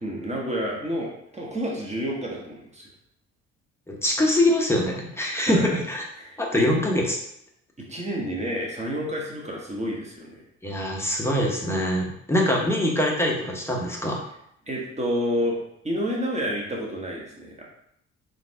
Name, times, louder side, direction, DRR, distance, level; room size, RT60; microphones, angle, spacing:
voice 1, 0.0-2.9 5.5-5.8 6.2-6.4 7.9-10.4 14.7-15.6 15.8-17.6, equal, 15° right, -2 dB, 1.3 m, -29 dB
voice 2, 3.9-6.0 6.4-7.2 10.6-14.2, left 1 dB, 5° left, -1 dB, 1.0 m, -23 dB
3.9 x 2.5 x 3.5 m, 0.73 s
figure-of-eight pair, 45°, 39 cm